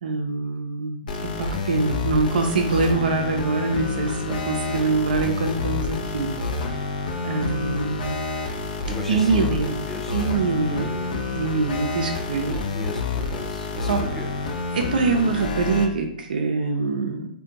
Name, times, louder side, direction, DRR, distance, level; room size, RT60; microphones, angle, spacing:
voice 1, 0.0-6.3 6.6-6.8 7.2-8.2 9.1-9.8 10.1-10.9 11.3-12.6 13.9-14.0 14.7-17.3, right 4 dB, 75° right, 3 dB, 0.4 m, -24 dB
sound 1, 1.1-15.9, left 3 dB, 70° left, 0.4 m, -28 dB
voice 2, 8.9-11.2 12.4-14.3, left 1 dB, 5° left, 1 dB, 0.5 m, -37 dB
2.5 x 2.1 x 2.8 m, 0.72 s
hypercardioid pair, 115°, 5 cm